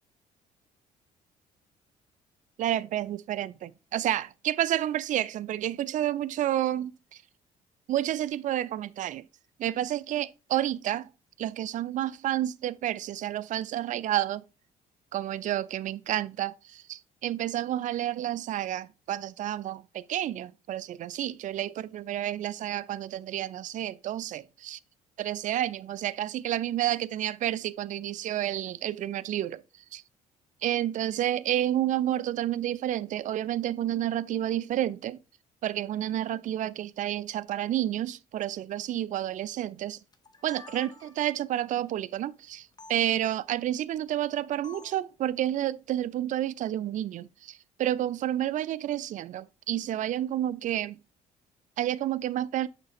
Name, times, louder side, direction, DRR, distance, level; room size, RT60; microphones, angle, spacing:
voice 1, 2.6-7.2 7.9-9.3 9.6-11.1 11.4-14.4 15.1-24.8 25.2-29.6 29.9-30.0 30.6-35.2 35.6-40.0 40.4-51.0 51.8-52.7, right 12 dB, 40° right, 0.4 m, -30 dB
sound 1, 40.1-41.4 42.8-43.0 44.6-45.1, left 4 dB, 20° left, 0.8 m, -49 dB
6.3 x 3.9 x 3.9 m
hypercardioid pair, 50°, 20 cm